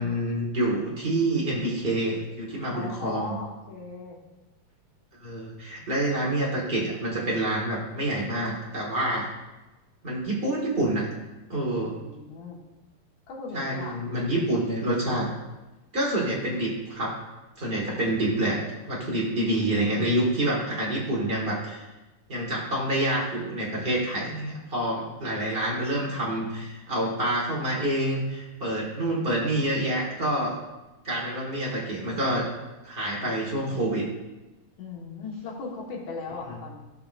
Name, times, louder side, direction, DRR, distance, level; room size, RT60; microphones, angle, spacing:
voice 1, 0.0-3.4 5.1-9.3 10.0-11.0 11.5-12.0 13.5-15.3 15.9-17.2 17.6-18.6 18.9-21.8 22.3-30.6 31.0-32.5 32.8-34.0, right 1 dB, 60° right, -4 dB, 0.6 m, -27 dB
voice 2, 2.5-4.2 11.8-12.6 13.3-14.0 34.8-36.8, left 4 dB, 60° left, -3 dB, 2.6 m, -38 dB
15.5 x 5.8 x 2.5 m, 1.1 s
omnidirectional pair, 4.0 m